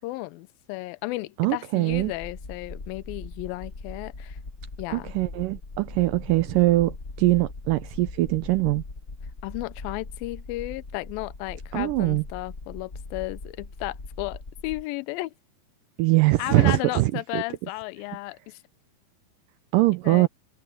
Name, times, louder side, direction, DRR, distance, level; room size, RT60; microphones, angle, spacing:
voice 1, 0.0-4.4 4.8-5.1 9.4-15.3 16.4-18.6 20.0-20.3, left 20 dB, 80° left, 2.4 m, -34 dB
voice 2, 1.4-2.1 4.9-8.8 11.7-12.2 16.0-17.4 19.7-20.3, right 19 dB, 85° right, 1.9 m, -22 dB
sound 1, 1.9-14.8, left 3 dB, 45° left, 0.9 m, -40 dB
omnidirectional pair, 4.4 m